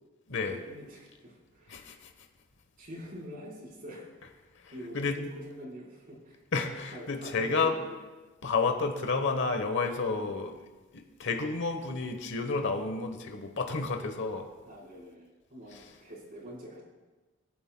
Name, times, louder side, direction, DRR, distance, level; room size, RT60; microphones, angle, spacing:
voice 1, 0.4-2.0 2.8-4.1 4.7-6.4 6.9-8.0 14.6-16.8, equal, 45° right, -3 dB, 4.1 m, -45 dB
voice 2, 1.7-2.1 4.6-5.2 6.5-7.7 8.4-10.6 10.9-14.5, left 4 dB, 65° left, 6 dB, 1.0 m, -31 dB
24.0 x 9.5 x 2.2 m, 1.2 s
head